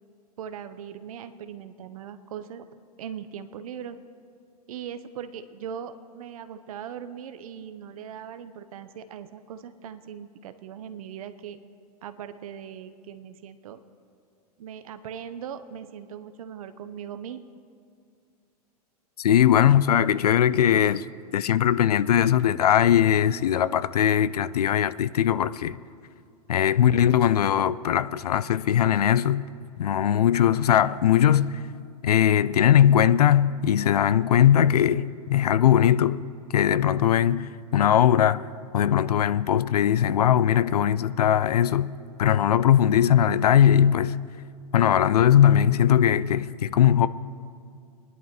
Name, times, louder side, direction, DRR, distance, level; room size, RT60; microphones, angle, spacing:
voice 1, 0.4-2.7 3.0-4.0 4.7-11.6 12.0-13.8 14.6-17.5 40.9-41.0, right 8 dB, 65° right, 0.7 m, -39 dB
voice 2, 19.2-21.1 21.3-25.8 26.5-29.4 29.8-31.6 32.0-36.2 36.5-38.5 38.7-44.2 44.7-47.1, left 10 dB, 75° left, 0.4 m, -20 dB
21.0 x 11.0 x 3.0 m
hypercardioid pair, 100°, 20 cm